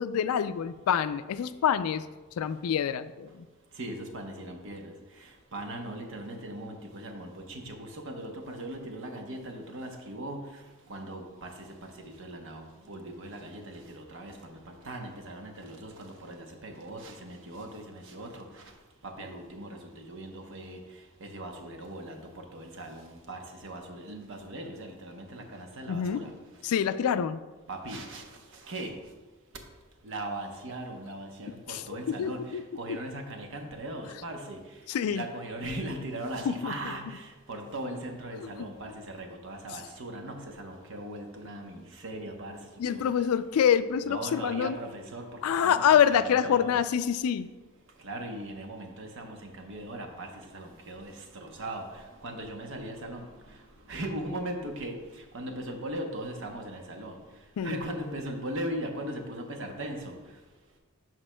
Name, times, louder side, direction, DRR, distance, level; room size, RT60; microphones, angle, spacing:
voice 1, 0.0-2.1 2.4-3.4 25.9-26.2 26.6-27.4 31.7-31.8 32.1-32.6 34.9-35.2 36.5-36.7 42.8-44.8 45.4-47.5 57.6-57.8, left 8 dB, 85° left, 13 dB, 0.3 m, -26 dB
voice 2, 3.8-4.9 5.2-10.5 10.9-18.6 19.0-20.8 21.2-26.3 27.7-28.2 28.5-29.0 30.0-34.6 35.1-42.6 42.9-43.1 44.0-46.8 48.0-53.3 53.9-57.2 57.6-60.2, right 1 dB, 60° right, 3 dB, 0.9 m, -39 dB
12.0 x 4.3 x 2.2 m, 1.2 s
head